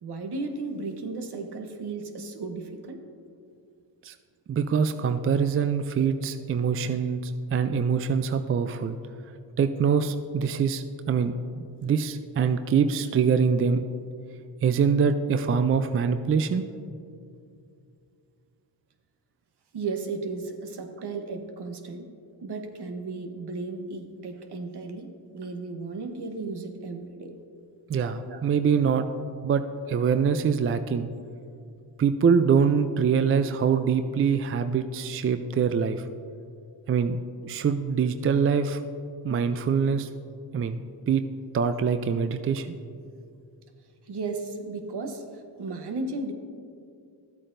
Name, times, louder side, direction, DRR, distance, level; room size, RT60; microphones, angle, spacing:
voice 1, 0.0-3.0 19.7-22.1 22.4-27.3 28.3-28.4 44.1-46.3, right 3 dB, 60° right, 5 dB, 1.1 m, -35 dB
voice 2, 4.5-9.0 9.6-11.3 11.8-13.8 14.6-16.6 27.9-29.0 29.4-29.6 29.9-31.1 32.0-36.1 36.9-37.2 37.4-38.8 39.2-40.1 40.5-40.8 41.1-41.2 41.5-42.8, right 6 dB, 30° right, 9 dB, 0.4 m, -24 dB
12.5 x 8.3 x 2.6 m, 2.4 s
cardioid pair, 60°, 44 cm